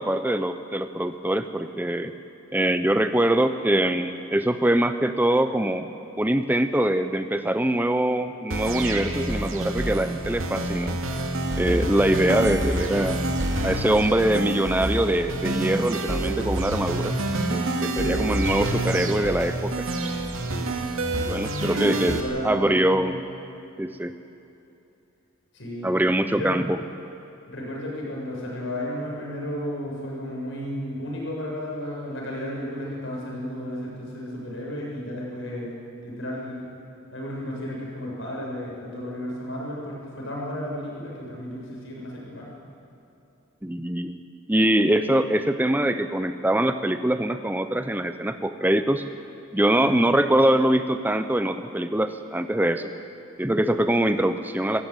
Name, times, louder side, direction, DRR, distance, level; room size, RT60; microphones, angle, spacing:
voice 1, 0.0-2.1 2.5-5.9 6.2-11.0 11.6-13.2 13.6-17.2 17.5-19.9 20.5-20.8 21.2-23.2 23.8-24.2 25.8-26.8 43.6-44.2 44.5-49.0 49.5-52.9 53.4-54.8, right 1 dB, 10° right, 9 dB, 0.7 m, -23 dB
sound 1, 8.5-22.2, right 1 dB, 70° right, 2.3 m, -27 dB
voice 2, 21.7-23.1 25.5-25.9 26.4-26.5 27.5-35.7 36.0-36.7 37.1-42.5 49.8-50.1, equal, 60° left, -3 dB, 7.2 m, -33 dB
25.5 x 15.5 x 9.3 m, 2.7 s
head